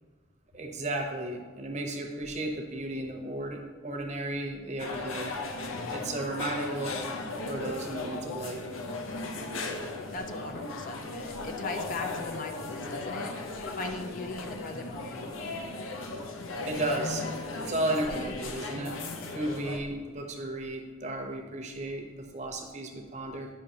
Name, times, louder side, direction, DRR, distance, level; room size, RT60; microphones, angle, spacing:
voice 1, 0.5-5.3 5.9-7.0 7.5-8.6 16.7-17.2 17.5-19.0 19.3-23.5, right 1 dB, 35° right, 2 dB, 0.8 m, -34 dB
sound 1, 4.8-19.8, left 3 dB, 80° left, 0.7 m, -36 dB
voice 2, 10.1-13.4 13.8-15.2, left 3 dB, 40° left, 6 dB, 0.4 m, -39 dB
9.0 x 5.5 x 2.9 m, 1.4 s
head